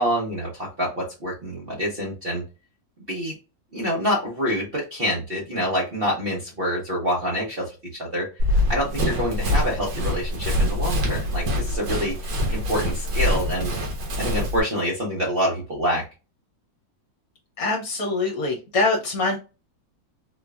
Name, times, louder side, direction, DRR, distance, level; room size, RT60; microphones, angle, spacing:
voice 1, 0.0-2.4 3.1-3.3 3.7-8.3 8.7-13.7 14.2-16.0, equal, 45° right, -3 dB, 0.8 m, -26 dB
Run, 8.4-14.6, left 1 dB, 70° right, 1.7 m, -24 dB
voice 2, 17.6-19.4, left 3 dB, 55° left, -1 dB, 1.2 m, -24 dB
4.2 x 2.6 x 2.2 m, 0.31 s
omnidirectional pair, 2.0 m